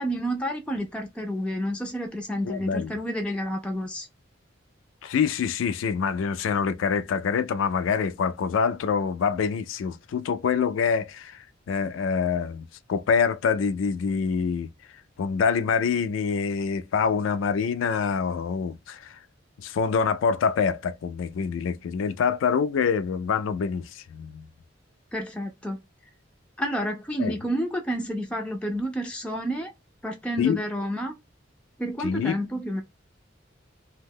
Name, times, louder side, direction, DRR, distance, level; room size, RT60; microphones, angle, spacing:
voice 1, 0.0-4.1 25.1-25.8 26.6-29.7 30.0-31.1 31.8-32.8, equal, 5° left, 0.3 m, -30 dB
voice 2, 2.4-2.9 5.0-14.7 15.2-19.2 19.6-24.5 27.2-27.3 30.4-30.6 32.0-32.4, left 6 dB, 90° left, 0.3 m, -26 dB
2.7 x 2.1 x 3.4 m
head